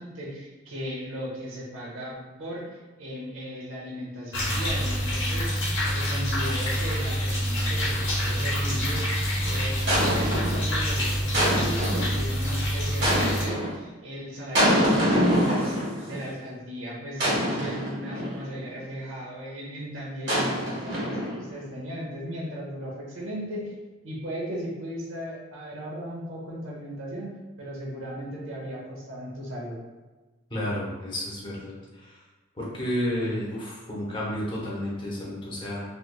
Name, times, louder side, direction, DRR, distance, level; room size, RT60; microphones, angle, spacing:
voice 1, 0.0-9.1 9.4-15.8 16.0-23.7 24.0-27.3 27.6-29.8, equal, 75° right, -3 dB, 0.9 m, -36 dB
sound 1, 4.3-13.5, equal, 65° left, 0.9 m, -27 dB
sound 2, 8.6-8.9 9.9-10.6 11.3-12.1 13.0-13.8 14.5-16.2 17.2-18.4 20.3-21.5, equal, 55° right, 1.4 m, -25 dB
voice 2, 30.5-32.2 32.6-35.8, equal, 25° left, -5 dB, 0.8 m, -31 dB
3.2 x 3.1 x 2.2 m, 1.2 s
head